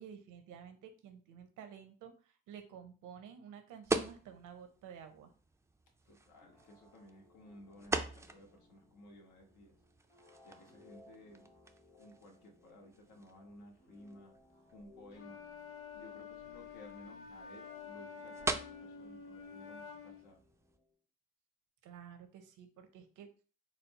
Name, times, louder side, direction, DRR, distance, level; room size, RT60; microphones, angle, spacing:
voice 1, 0.0-5.3 21.8-23.3, right 8 dB, 90° right, 0.8 m, -52 dB
sound 1, 3.8-20.8, right 3 dB, 10° right, 0.4 m, -44 dB
voice 2, 6.1-9.7 10.4-11.5 11.9-14.4 14.7-15.4 15.9-20.4, left 1 dB, 75° left, 1.3 m, -57 dB
sound 2, 6.4-21.0, left 2 dB, 20° left, 0.9 m, -64 dB
Wind instrument woodwind instrument, 15.1-20.3, left 6 dB, 50° left, 0.8 m, -49 dB
4.2 x 2.0 x 4.1 m
cardioid pair, 90°, 30 cm